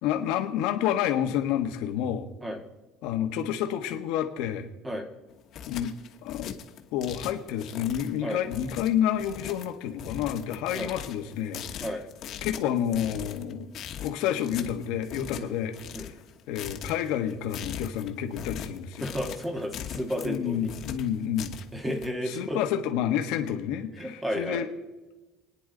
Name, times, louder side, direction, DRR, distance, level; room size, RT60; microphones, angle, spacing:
voice 1, 0.0-2.3 3.0-4.7 5.7-5.9 6.2-6.6 6.9-11.9 12.4-13.7 14.0-16.1 16.5-19.1 20.2-21.5 22.3-24.7, left 10 dB, 75° left, 5 dB, 1.4 m, -29 dB
sound 1, 5.3-22.1, left 9 dB, 45° left, 1.3 m, -40 dB
voice 2, 19.0-20.7 21.7-22.6 24.0-24.6, equal, 10° right, 5 dB, 1.5 m, -32 dB
28.5 x 9.9 x 3.9 m, 1.2 s
cardioid pair, 165°, 0 cm